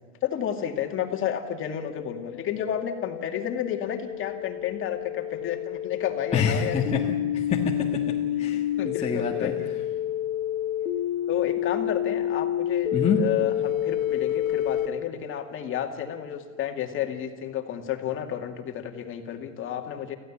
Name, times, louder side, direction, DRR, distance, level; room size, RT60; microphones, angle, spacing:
voice 1, 0.2-7.0 8.8-9.7 11.3-20.2, left 10 dB, 30° left, 4 dB, 2.4 m, -31 dB
sound 1, 1.6-14.9, left 11 dB, 80° left, 2.2 m, -29 dB
voice 2, 6.3-9.5 12.9-13.2, left 6 dB, 15° left, -2 dB, 1.6 m, -27 dB
25.0 x 16.0 x 8.6 m, 1.5 s
supercardioid pair, 140°, 38 cm